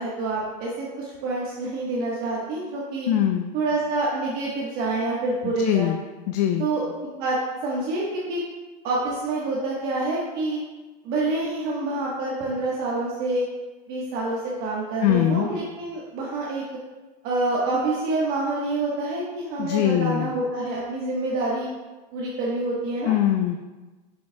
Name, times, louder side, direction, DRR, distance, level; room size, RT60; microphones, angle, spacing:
voice 1, 0.0-3.1 3.5-5.9 6.6-8.0 8.3-8.4 8.8-10.6 11.0-13.5 13.9-16.6 17.2-21.7 22.1-23.1, right 2 dB, 50° right, -5 dB, 1.2 m, -27 dB
voice 2, 3.1-3.5 5.4-6.0 6.3-6.7 15.0-15.5 19.6-20.3 23.0-23.6, left 11 dB, 75° left, 5 dB, 0.5 m, -22 dB
7.1 x 6.3 x 2.2 m, 1.2 s
supercardioid pair, 145°, 21 cm